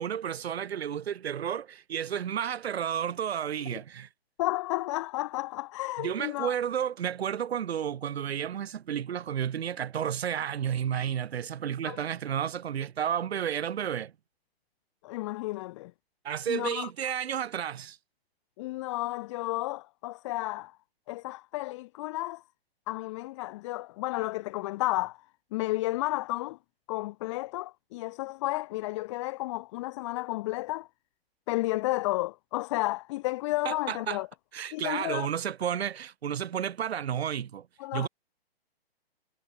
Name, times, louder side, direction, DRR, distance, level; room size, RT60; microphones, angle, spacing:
voice 1, 0.0-4.1 6.0-14.1 16.2-18.0 33.6-34.2 34.5-37.7 37.9-38.1, right 9 dB, 85° right, 1.1 m, -32 dB
voice 2, 4.4-6.5 11.9-12.0 15.0-15.9 16.5-16.9 18.6-20.8 21.1-22.4 22.9-25.2 25.5-26.6 26.9-30.9 31.5-34.3 34.7-35.3 37.8-38.1, left 19 dB, 30° left, 1.8 m, -32 dB
hypercardioid pair, 165°, 31 cm